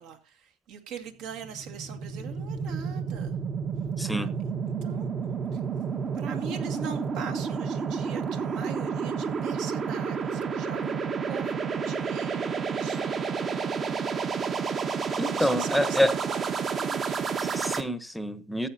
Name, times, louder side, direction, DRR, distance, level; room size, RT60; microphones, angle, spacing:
voice 1, 0.0-3.4 4.0-4.3 4.8-5.1 5.5-5.6 6.1-11.0 11.3-11.6 11.8-13.2 15.2-17.2, right 7 dB, 65° right, 2.0 m, -41 dB
sound 1, 1.3-17.8, right 6 dB, 35° right, 1.2 m, -30 dB
voice 2, 4.0-4.3 15.2-16.1 17.4-18.7, equal, ahead, 0.9 m, -27 dB
15.0 x 8.2 x 2.7 m
supercardioid pair, 105°, 0 cm